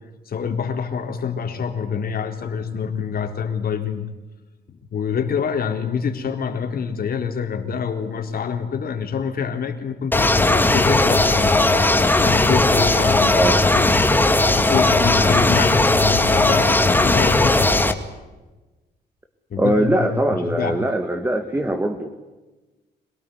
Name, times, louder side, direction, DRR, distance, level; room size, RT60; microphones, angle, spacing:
voice 1, 0.3-4.1 4.7-11.6 12.2-13.4 13.7-17.8 19.5-20.8, left 6 dB, 55° left, 5 dB, 4.0 m, -26 dB
sound 1, 10.1-17.9, left 2 dB, 10° left, 2.2 m, -17 dB
voice 2, 19.6-22.1, right 1 dB, 10° right, 5 dB, 2.1 m, -21 dB
26.5 x 18.5 x 9.9 m, 1.2 s
cardioid pair, 120°, 18 cm